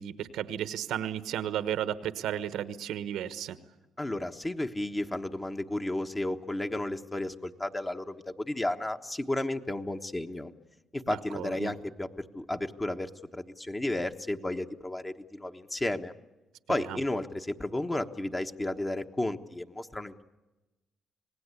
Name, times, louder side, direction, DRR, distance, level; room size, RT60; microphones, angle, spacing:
voice 1, 0.0-3.6 11.1-11.7 16.8-17.0, right 10 dB, 85° right, 12 dB, 1.2 m, -34 dB
voice 2, 4.0-10.5 10.9-16.1 16.7-20.2, left 1 dB, 20° left, 6 dB, 1.3 m, -33 dB
26.5 x 19.0 x 8.4 m, 1.1 s
cardioid pair, 90°, 0 cm